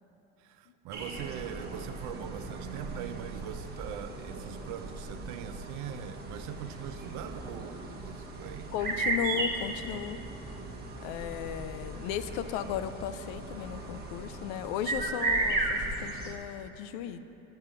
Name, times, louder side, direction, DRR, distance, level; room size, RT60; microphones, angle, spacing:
voice 1, 0.4-8.7, right 9 dB, 60° right, 11 dB, 0.5 m, -42 dB
sound 1, 0.9-16.4, right 2 dB, 30° right, 1.1 m, -36 dB
voice 2, 8.7-10.2 11.0-17.2, left 9 dB, 70° left, 11 dB, 0.5 m, -35 dB
6.8 x 5.5 x 7.2 m, 3.0 s
supercardioid pair, 100°, 33 cm